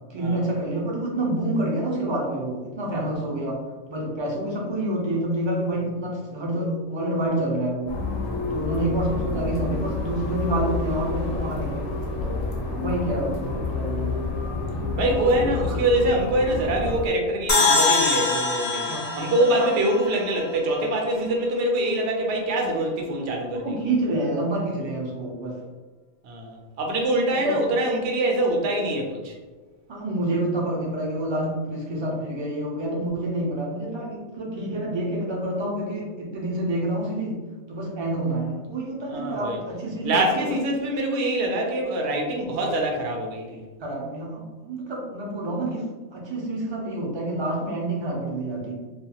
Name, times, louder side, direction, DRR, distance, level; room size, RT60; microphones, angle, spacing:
voice 1, 0.1-3.6 3.9-7.9 8.5-11.9 12.2-12.5 12.8-14.3 18.9-19.1 19.6-19.7 21.1-21.3 23.5-25.6 27.4-27.6 29.9-37.4 37.7-40.5 43.8-48.7, right 1 dB, 40° right, -3 dB, 0.4 m, -28 dB
sound 1, 7.9-17.1, left 3 dB, 75° left, 0.9 m, -29 dB
voice 2, 15.0-23.7 26.2-29.4 39.1-39.6 40.0-43.6, right 1 dB, 75° right, 1 dB, 0.8 m, -24 dB
sound 2, 17.5-20.8, left 3 dB, 55° left, 0.4 m, -24 dB
2.4 x 2.3 x 2.7 m, 1.2 s
omnidirectional pair, 1.2 m